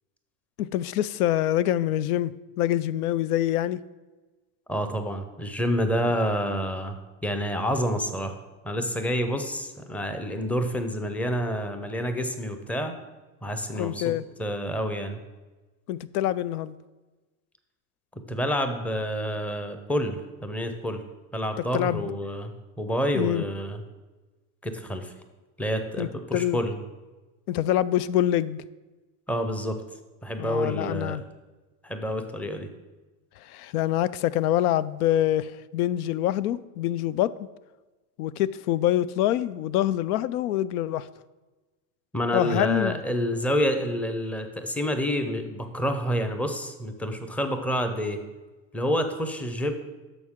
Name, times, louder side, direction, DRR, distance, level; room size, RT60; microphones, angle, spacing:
voice 1, 0.6-3.8 13.8-14.2 15.9-16.7 21.7-22.1 23.1-23.4 26.0-26.6 27.5-28.6 30.4-31.2 33.4-37.4 38.2-41.1 42.3-43.0, left 12 dB, 90° left, 18 dB, 0.5 m, -25 dB
voice 2, 4.7-8.4 8.6-12.9 13.4-14.1 14.4-15.2 18.1-21.0 21.3-23.8 24.6-25.1 25.6-26.8 29.3-29.8 30.2-31.2 31.8-32.7 42.1-48.2 48.7-49.7, equal, 5° left, 7 dB, 0.5 m, -28 dB
11.0 x 6.7 x 3.6 m, 1.2 s
supercardioid pair, 135°, 44 cm